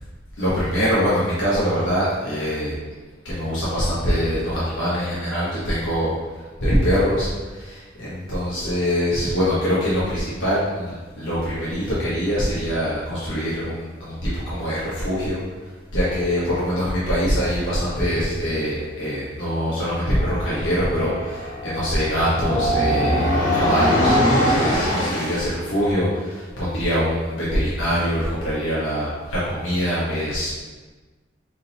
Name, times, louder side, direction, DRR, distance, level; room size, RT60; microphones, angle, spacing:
voice 1, 0.4-2.8 3.2-15.4 15.9-30.5, equal, 70° left, -9 dB, 1.1 m, -23 dB
sound 1, 20.0-25.5, equal, 40° left, 1.0 m, -22 dB
4.0 x 3.7 x 2.8 m, 1.3 s
head